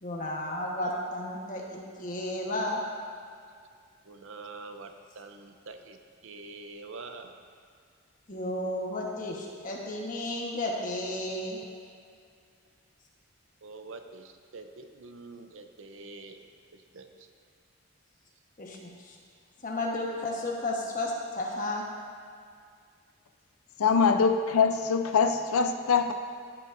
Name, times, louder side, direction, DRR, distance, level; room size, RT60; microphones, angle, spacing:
voice 1, 0.0-2.8 8.3-11.6 18.6-19.2 19.6-21.8, left 1 dB, 40° left, -2 dB, 1.1 m, -33 dB
voice 2, 4.1-6.0 6.2-7.3 13.6-16.4 16.9-17.3, right 3 dB, 65° right, 7 dB, 0.6 m, -45 dB
voice 3, 23.8-26.1, left 5 dB, 80° left, 7 dB, 0.5 m, -23 dB
14.0 x 6.7 x 2.6 m, 2.2 s
head